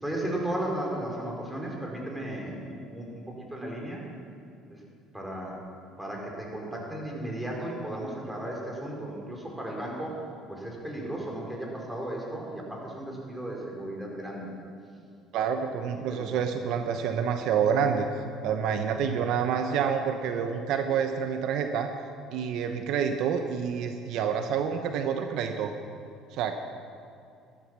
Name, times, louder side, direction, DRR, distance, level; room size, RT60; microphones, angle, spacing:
voice 1, 0.0-3.2 3.5-4.0 4.7-4.8 5.1-5.6 6.0-10.2 10.5-14.5 15.9-16.4, right 1 dB, 5° right, -2 dB, 4.5 m, -35 dB
voice 2, 15.3-18.1 18.4-21.9 22.3-25.7 26.3-26.6, right 7 dB, 70° right, 7 dB, 0.9 m, -28 dB
13.0 x 12.5 x 6.2 m, 2.4 s
supercardioid pair, 80°, 0 cm